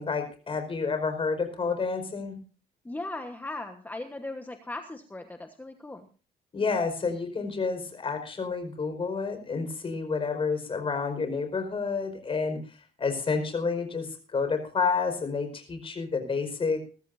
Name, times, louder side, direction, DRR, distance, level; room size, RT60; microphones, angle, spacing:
voice 1, 0.0-2.4 6.5-12.6 13.0-16.8, left 4 dB, 30° left, 6 dB, 4.9 m, -29 dB
voice 2, 2.8-6.1, left 2 dB, 10° left, 7 dB, 1.2 m, -38 dB
21.5 x 13.5 x 2.7 m, 0.36 s
cardioid pair, 110°, 17 cm